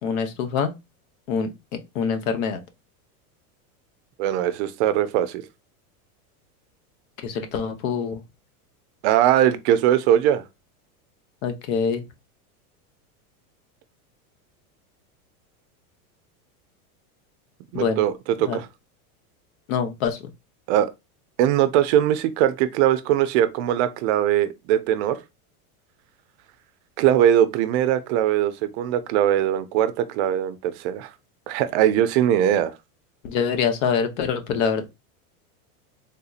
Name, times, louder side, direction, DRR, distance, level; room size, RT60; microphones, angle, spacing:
voice 1, 0.0-0.7 1.3-1.5 1.9-2.6 7.2-8.2 11.4-12.0 17.7-18.0 18.5-18.6 19.7-20.2 33.2-34.9, left 6 dB, 65° left, 0.9 m, -25 dB
voice 2, 4.2-5.4 9.0-10.4 17.7-18.7 20.7-20.9 21.4-25.2 27.0-31.1 31.5-32.7, right 11 dB, 55° right, 0.5 m, -21 dB
3.6 x 2.7 x 2.3 m
supercardioid pair, 135°, 44 cm